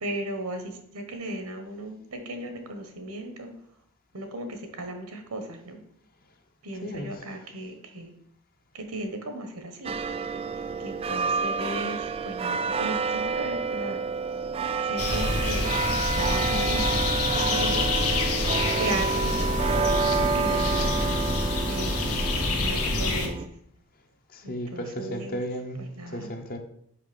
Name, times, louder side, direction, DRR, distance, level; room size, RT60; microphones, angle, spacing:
voice 1, 0.0-3.5 4.1-5.8 6.6-8.1 8.7-9.9 10.8-14.0 14.8-17.0 17.5-18.3 18.8-20.9 21.7-22.0 22.6-23.4 24.4-25.4 25.8-26.3, right 1 dB, 85° right, 6 dB, 1.4 m, -36 dB
voice 2, 6.8-7.2 24.3-25.8 26.1-26.6, equal, 40° left, 5 dB, 0.9 m, -34 dB
sound 1, 9.8-23.5, right 5 dB, 25° right, 0.3 m, -29 dB
sound 2, 15.0-23.3, left 2 dB, 85° left, 1.2 m, -27 dB
5.7 x 5.4 x 5.3 m, 0.71 s
head